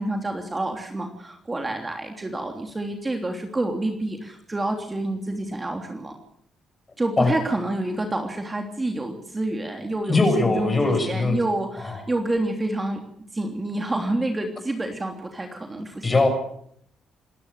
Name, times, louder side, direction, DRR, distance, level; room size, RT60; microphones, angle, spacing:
voice 1, 0.0-6.1 7.0-13.0 13.3-16.2, right 2 dB, 20° right, 3 dB, 3.2 m, -28 dB
voice 2, 10.1-11.4 11.8-12.0 16.0-16.3, left 3 dB, 25° left, 6 dB, 7.1 m, -20 dB
27.5 x 12.5 x 8.3 m, 0.69 s
cardioid pair, 90°, 0 cm